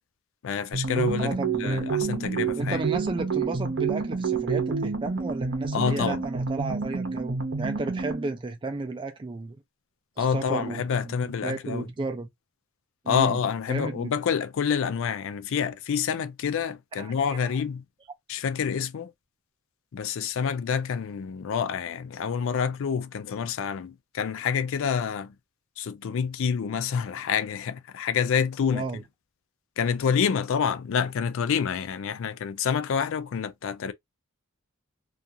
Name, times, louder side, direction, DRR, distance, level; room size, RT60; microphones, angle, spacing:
voice 1, 0.4-2.8 5.7-6.2 10.2-11.9 13.1-17.8 18.3-19.1 19.9-25.3 25.8-28.9 29.8-33.9, left 7 dB, 60° left, 0.4 m, -27 dB
sound 1, 0.7-8.4, right 5 dB, 50° right, 0.7 m, -29 dB
voice 2, 1.2-1.8 2.6-9.6 10.2-12.3 13.0-13.4 13.7-14.1 17.0-17.1 17.4-17.5 28.7-29.0, right 3 dB, 20° right, 0.4 m, -33 dB
2.4 x 2.3 x 2.7 m
head